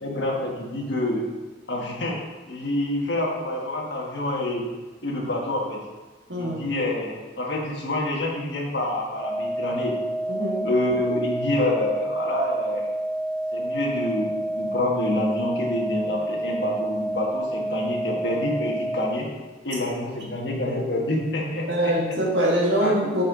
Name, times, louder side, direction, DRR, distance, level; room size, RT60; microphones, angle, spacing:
voice 1, 0.0-1.3 1.7-2.2 2.5-4.7 5.0-5.8 6.4-10.0 10.6-12.9 13.5-14.3 14.6-19.3 19.6-21.9 22.8-23.1, left 1 dB, 65° left, -1 dB, 1.5 m, -27 dB
voice 2, 6.3-6.6 10.3-10.7 21.7-23.2, right 1 dB, 65° right, -3 dB, 1.9 m, -23 dB
sound 1, 9.1-19.1, right 1 dB, ahead, 1.1 m, -29 dB
6.7 x 5.5 x 4.9 m, 1.2 s
head